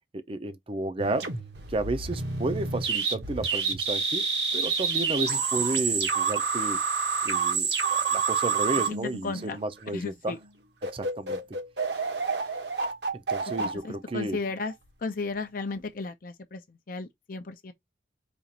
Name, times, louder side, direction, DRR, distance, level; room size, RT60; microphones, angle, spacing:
voice 1, 0.1-1.3 1.7-4.3 4.5-6.8 7.2-10.3 10.8-11.4 13.1-14.4, right 2 dB, 30° right, 0.5 m, -32 dB
sound 1, 1.0-9.8 10.4-10.5 10.8-14.7, right 5 dB, 65° right, 1.1 m, -28 dB
voice 2, 9.2-9.6 9.9-10.4 13.8-14.7 15.0-17.7, left 3 dB, 50° left, 0.5 m, -34 dB
5.1 x 2.4 x 2.8 m
head